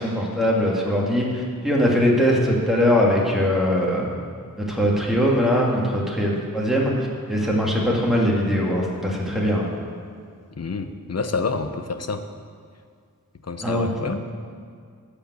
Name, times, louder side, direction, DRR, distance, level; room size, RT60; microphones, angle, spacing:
voice 1, 0.0-4.0 4.6-9.7 13.6-13.9, equal, ahead, -3 dB, 2.1 m, -21 dB
voice 2, 10.6-12.3 13.4-14.2, left 4 dB, 45° left, 8 dB, 0.7 m, -28 dB
12.0 x 5.1 x 8.1 m, 2.2 s
wide cardioid pair, 90°, 35 cm